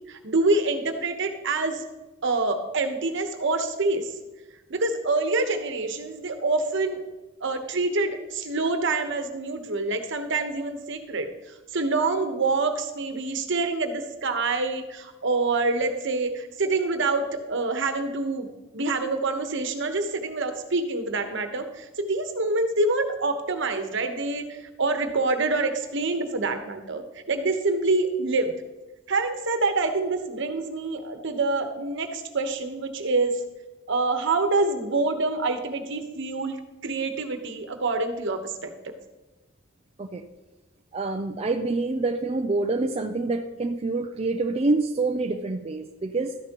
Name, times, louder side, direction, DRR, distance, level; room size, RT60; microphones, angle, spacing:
voice 1, 0.1-1.8 2.2-4.1 4.7-7.0 7.4-11.3 11.7-18.5 18.7-28.5 29.1-33.4 33.9-36.6 36.8-38.7, right 3 dB, 65° right, 7 dB, 1.1 m, -26 dB
voice 2, 40.9-46.4, right 3 dB, 30° right, 5 dB, 0.5 m, -26 dB
12.5 x 10.0 x 3.0 m, 1.1 s
head